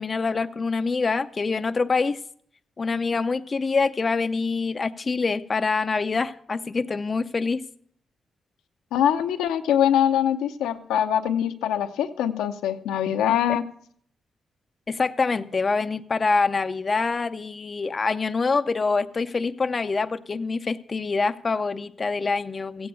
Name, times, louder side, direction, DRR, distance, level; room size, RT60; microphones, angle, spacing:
voice 1, 0.0-2.2 2.8-7.6 14.9-22.9, left 4 dB, 45° left, 0.5 m, -25 dB
voice 2, 8.9-13.6, left 10 dB, 85° left, 0.7 m, -23 dB
15.0 x 8.7 x 6.4 m
supercardioid pair, 45°, 0 cm